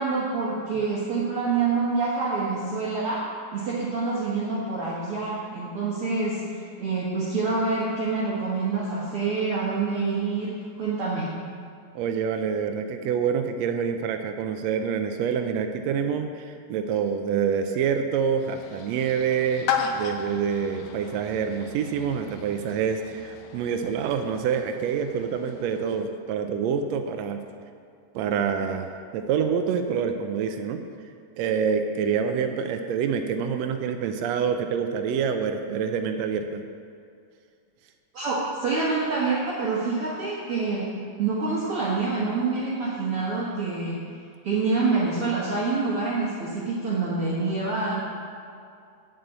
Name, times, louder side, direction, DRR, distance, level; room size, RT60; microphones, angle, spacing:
voice 1, 0.0-3.2 3.5-11.3 38.1-40.9 41.2-44.0 44.4-48.0, right 4 dB, 50° right, -7 dB, 2.0 m, -26 dB
voice 2, 11.9-19.7 19.9-27.4 28.1-30.8 31.4-36.6, right 7 dB, 80° right, 6 dB, 1.5 m, -26 dB
sound 1, 18.4-26.0, left 6 dB, 70° left, 2.0 m, -35 dB
8.3 x 7.8 x 7.9 m, 2.4 s
omnidirectional pair, 3.7 m